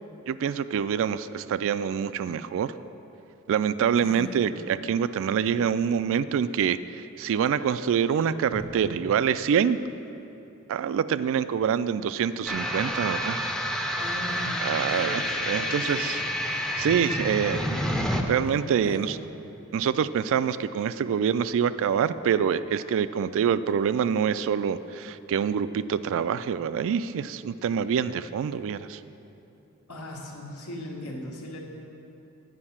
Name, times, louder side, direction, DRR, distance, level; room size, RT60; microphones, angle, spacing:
voice 1, 0.3-2.7 3.5-9.8 10.7-13.4 14.6-15.2 15.5-16.2 16.5-17.6 18.1-19.2 19.7-29.0, right 7 dB, 60° right, 15 dB, 0.3 m, -26 dB
voice 2, 4.0-4.6 8.5-8.6 14.0-16.2 18.8-19.1 29.9-31.6, left 1 dB, 80° left, -1 dB, 1.5 m, -38 dB
sound 1, 12.5-18.2, equal, 5° left, 0.5 m, -29 dB
9.8 x 5.3 x 7.2 m, 2.9 s
head